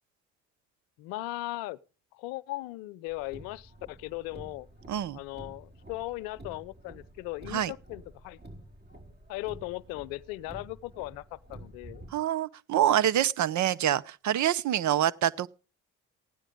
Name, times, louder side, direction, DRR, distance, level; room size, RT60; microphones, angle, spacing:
voice 1, 1.0-1.8 2.1-4.7 5.1-8.4 9.3-12.1, left 18 dB, 80° left, 0.7 m, -38 dB
Car, 3.1-12.1, right 1 dB, 30° right, 5.0 m, -50 dB
voice 2, 4.9-5.2 7.5-7.7 12.1-15.5, right 11 dB, 55° right, 0.8 m, -26 dB
15.5 x 10.0 x 5.3 m
hypercardioid pair, 60°, 34 cm